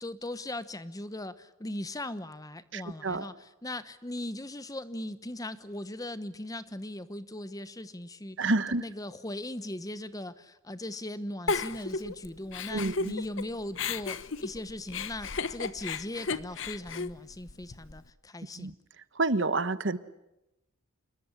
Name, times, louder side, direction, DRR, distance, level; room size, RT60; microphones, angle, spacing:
voice 1, 0.0-8.5 8.8-18.7, left 1 dB, 15° left, 14 dB, 0.9 m, -39 dB
voice 2, 2.7-3.3 8.4-8.8 12.7-13.1 18.6-18.7 19.2-20.0, right 2 dB, 55° right, 14 dB, 1.1 m, -28 dB
Giggle, 11.5-13.4 13.7-18.0, left 4 dB, 55° left, 1.1 m, -34 dB
27.0 x 21.5 x 10.0 m, 0.90 s
head